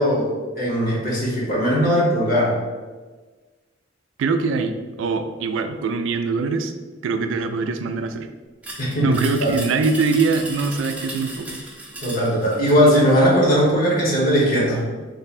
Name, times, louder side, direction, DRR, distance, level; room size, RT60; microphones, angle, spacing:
voice 1, 0.0-2.6 8.8-9.6 12.0-14.8, equal, 50° left, -5 dB, 1.2 m, -19 dB
voice 2, 4.2-6.7 7.0-8.3 9.0-11.6, right 4 dB, 75° right, 8 dB, 0.3 m, -23 dB
sound 1, 8.6-13.1, right 1 dB, 5° right, 0.6 m, -35 dB
3.1 x 2.1 x 4.2 m, 1.3 s
head